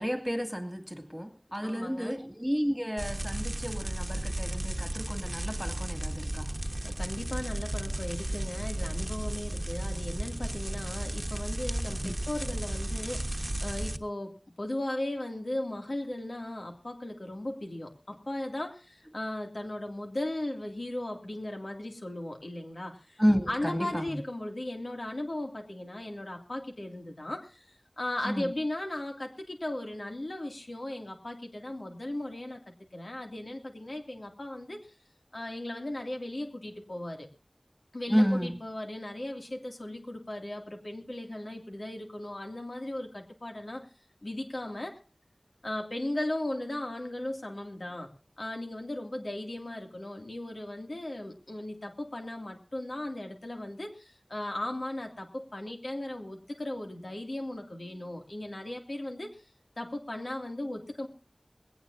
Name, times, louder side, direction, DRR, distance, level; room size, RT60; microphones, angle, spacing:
voice 1, 0.0-6.5 12.0-12.1 23.2-24.2 28.3-28.5 38.1-38.6, equal, 5° right, 6 dB, 2.5 m, -31 dB
voice 2, 1.6-2.2 6.8-34.9 35.3-37.3 37.9-43.9 44.2-45.0 45.6-48.1 48.4-59.4 59.8-61.1, left 1 dB, 85° left, 3 dB, 2.5 m, -37 dB
sound 1, 3.0-14.0, right 1 dB, 35° right, 1.1 m, -34 dB
20.5 x 17.0 x 2.7 m, 0.34 s
wide cardioid pair, 40°, 0 cm